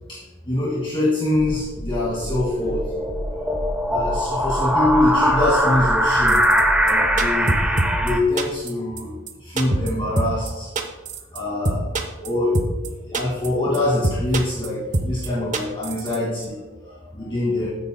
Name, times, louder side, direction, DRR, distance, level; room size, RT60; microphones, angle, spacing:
voice 1, 0.5-2.9 3.9-6.4 6.8-7.6 8.0-9.1 9.4-10.7 11.3-11.9 12.2-12.6 13.0-16.6 16.8-17.7, left 1 dB, 25° left, -8 dB, 2.3 m, -24 dB
sound 1, 1.4-8.2, equal, 5° right, 0.8 m, -21 dB
sound 2, 6.3-6.6 6.9-7.0 7.2-8.1 8.4-8.7 9.0-9.1 9.3-9.4 9.6-9.9 10.2-10.5 10.8-11.4 11.6-12.3 12.5-12.9 13.1-13.5 13.7-13.8 14.0-14.7 14.9-15.3 15.5-16.2 16.4-16.5, right 2 dB, 40° right, 0.9 m, -23 dB
13.5 x 9.7 x 2.2 m, 1.2 s
head